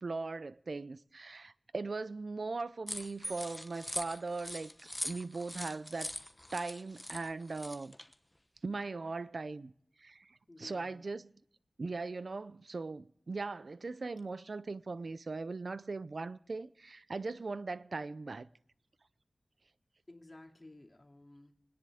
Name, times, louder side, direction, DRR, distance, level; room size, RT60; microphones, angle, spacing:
voice 1, 0.0-4.7 5.0-6.1 6.5-7.9 8.6-9.7 10.0-11.3 11.8-18.5, right 3 dB, 70° right, 0.5 m, -39 dB
sound 1, 2.9-8.1, left 1 dB, 15° left, 1.0 m, -43 dB
sound 2, 3.2-5.0, right 2 dB, 15° right, 3.0 m, -49 dB
voice 2, 10.5-11.1 20.1-21.5, left 2 dB, 40° left, 2.4 m, -54 dB
28.5 x 10.0 x 3.5 m
cardioid pair, 45°, 0 cm